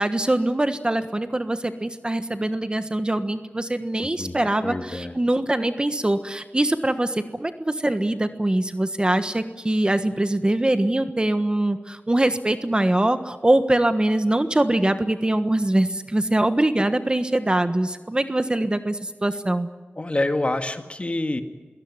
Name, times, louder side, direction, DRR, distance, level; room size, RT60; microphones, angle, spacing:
voice 1, 0.0-19.7, right 1 dB, 25° right, 9 dB, 1.3 m, -23 dB
voice 2, 4.0-5.1 20.0-21.4, left 2 dB, 30° left, 7 dB, 1.9 m, -27 dB
22.5 x 17.5 x 9.7 m, 1.3 s
wide cardioid pair, 75°, 4 cm